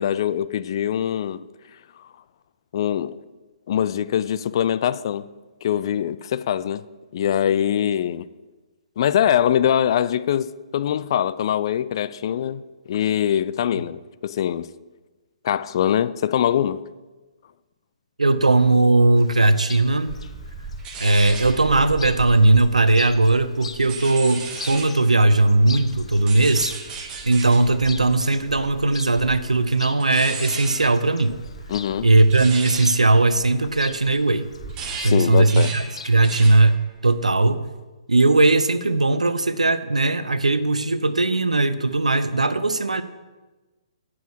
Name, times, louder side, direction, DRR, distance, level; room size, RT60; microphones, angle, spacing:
voice 1, 0.0-1.4 2.7-3.2 3.7-5.3 5.6-6.8 7.1-8.3 9.0-12.6 12.9-14.7 15.4-16.8 31.7-32.1 35.0-35.7, left 10 dB, 45° left, 0.3 m, -23 dB
voice 2, 18.2-20.1 21.0-26.7 27.2-31.4 32.0-34.5 35.0-37.6 38.1-43.0, right 2 dB, 75° right, 0.7 m, -18 dB
Chirp tweet, 19.2-36.3, left 5 dB, 60° left, 0.7 m, -43 dB
sound 1, 20.1-25.1 25.4-34.1 34.4-36.8 37.1-37.5, right 4 dB, 20° right, 1.2 m, -36 dB
10.5 x 6.2 x 6.2 m
figure-of-eight pair, 125°, 4 cm